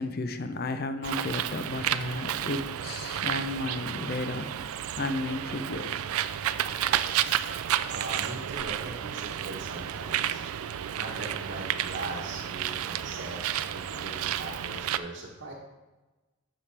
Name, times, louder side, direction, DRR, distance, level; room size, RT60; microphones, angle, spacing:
voice 1, 0.0-4.7 5.0-6.0 7.3-7.9 13.9-14.4, left 2 dB, 45° left, 10 dB, 0.5 m, -34 dB
Bird, 1.0-15.0, right 10 dB, 80° right, 0.4 m, -31 dB
voice 2, 7.9-10.4 10.9-13.4 13.7-15.5, right 2 dB, 50° right, -6 dB, 1.1 m, -40 dB
10.0 x 6.7 x 3.3 m, 1.1 s
head